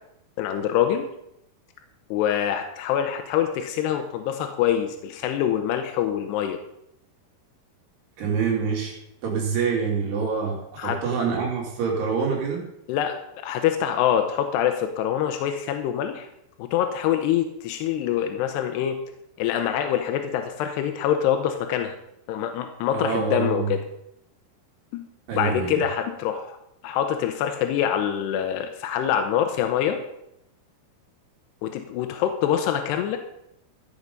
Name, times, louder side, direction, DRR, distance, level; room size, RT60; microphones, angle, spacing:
voice 1, 0.4-1.1 2.1-6.6 10.8-11.0 12.9-13.2 13.4-16.3 16.6-19.0 19.4-21.9 22.3-23.8 24.9-25.1 25.3-26.6 26.8-30.0 31.6-33.2, left 10 dB, 85° left, 6 dB, 3.0 m, -25 dB
voice 2, 8.2-8.9 9.2-12.6 22.9-23.7 25.3-25.8, right 5 dB, 75° right, -1 dB, 4.9 m, -26 dB
14.5 x 7.3 x 5.3 m, 0.79 s
omnidirectional pair, 4.7 m